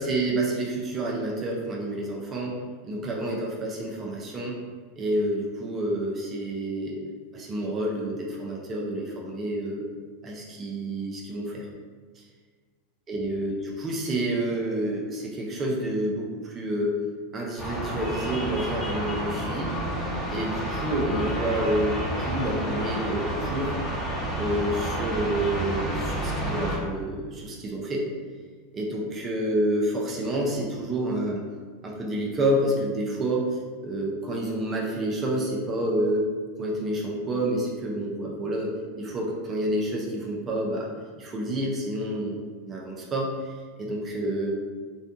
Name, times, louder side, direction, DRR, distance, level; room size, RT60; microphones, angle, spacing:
voice 1, 0.0-2.6 2.8-4.6 5.0-7.0 7.3-9.9 10.2-11.7 13.1-17.0 17.3-19.7 20.3-23.8 24.4-28.0 28.7-31.4 31.8-33.5 33.8-36.3 36.6-40.9 41.2-42.4 42.7-44.5, right 1 dB, 30° right, -2 dB, 0.5 m, -28 dB
sound 1, 17.6-26.8, right 1 dB, 10° left, 1.0 m, -30 dB
2.5 x 2.2 x 2.6 m, 1.5 s
hypercardioid pair, 100°, 0 cm